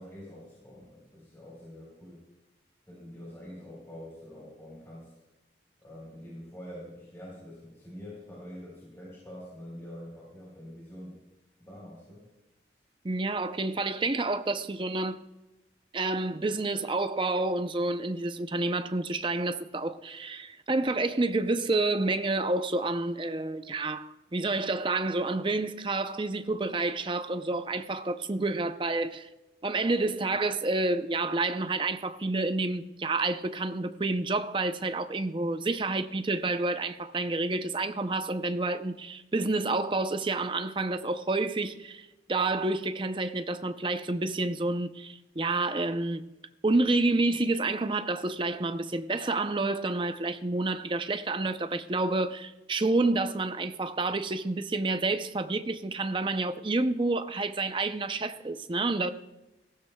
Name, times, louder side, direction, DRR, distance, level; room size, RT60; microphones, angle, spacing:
voice 1, 0.0-2.2 2.9-5.1 5.8-11.2 11.6-12.3, equal, 15° left, 3.8 m, -45 dB
voice 2, 13.0-15.2 15.9-29.3 29.6-46.2 46.6-59.1, right 2 dB, 30° right, 0.5 m, -29 dB
18.5 x 15.0 x 2.3 m
head